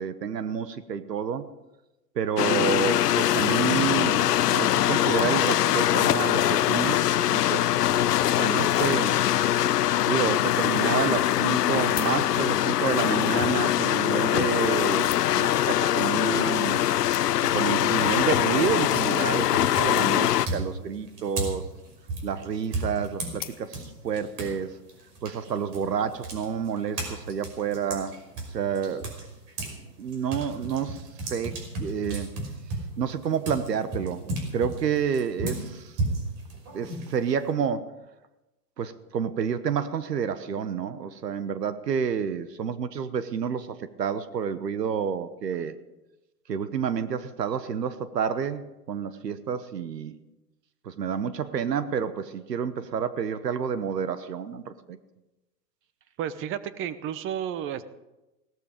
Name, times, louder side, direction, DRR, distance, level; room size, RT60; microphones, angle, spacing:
voice 1, 0.0-1.5 2.1-7.8 8.4-9.2 10.1-16.8 17.4-21.7 22.2-24.8 25.2-28.2 28.5-29.1 30.0-32.3 33.0-35.9 36.7-37.9 38.8-45.7 46.5-50.2 50.8-55.0, right 7 dB, 85° right, 13 dB, 1.1 m, -29 dB
sound 1, 2.4-20.5, left 12 dB, 75° left, 0.8 m, -23 dB
sound 2, 11.8-12.7 13.6-13.8 14.6-15.6 16.4-16.5 16.8-16.9 17.1-17.6 18.3-18.6 18.9-19.0 19.2-19.3 19.5-19.6 20.0-20.4 21.4-21.9 23.3-24.0 24.6-24.7, left 14 dB, 20° left, 0.6 m, -43 dB
sound 3, 19.0-19.2 19.7-24.6 24.9-29.8 30.1-37.5, right 2 dB, 40° right, 5.6 m, -34 dB
voice 2, 56.2-57.8, right 9 dB, 25° right, 14 dB, 0.8 m, -32 dB
17.5 x 13.0 x 5.1 m, 1.0 s
hypercardioid pair, 115°, 47 cm